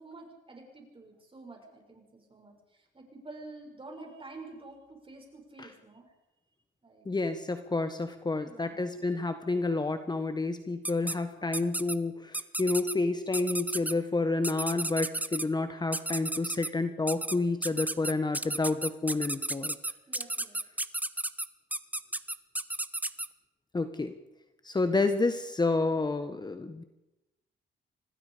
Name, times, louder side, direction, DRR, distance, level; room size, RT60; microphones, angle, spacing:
voice 1, 0.0-6.1 6.8-7.1 8.4-9.0 20.1-20.6, right 2 dB, 25° right, 2 dB, 7.0 m, -49 dB
voice 2, 7.0-19.8 23.7-24.2 24.6-26.8, left 3 dB, 20° left, 9 dB, 1.4 m, -29 dB
sound 1, 10.8-11.2 11.5-12.0 12.3-12.9 13.3-13.9 14.4-15.5 15.9-16.7 17.1-17.4 17.6-23.3, right 1 dB, 10° right, 1.0 m, -32 dB
26.0 x 19.5 x 5.2 m, 0.95 s
cardioid pair, 90°, 20 cm